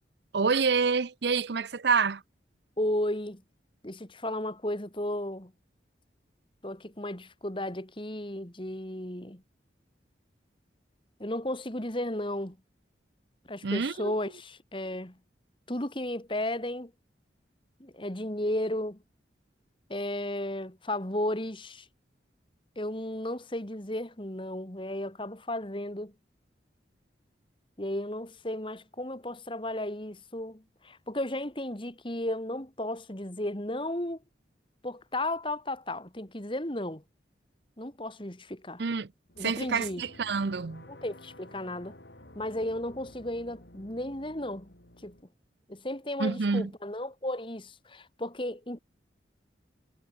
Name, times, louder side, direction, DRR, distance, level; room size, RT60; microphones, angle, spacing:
voice 1, 0.3-2.2 13.6-14.1 38.8-39.1 39.4-40.8 46.2-46.7, right 5 dB, 65° right, 0.6 m, -27 dB
voice 2, 2.8-3.4 3.8-5.5 6.6-9.4 11.2-12.6 13.5-15.2 15.7-16.9 17.8-19.0 19.9-21.9 22.8-26.1 27.8-34.2 34.8-37.0 37.8-38.8 39.4-40.0 40.9-42.0 42.3-44.7 45.0-45.2 45.7-48.8, left 1 dB, 25° left, 2.4 m, -34 dB
sound 1, 39.3-45.2, left 1 dB, 70° left, 6.0 m, -52 dB
head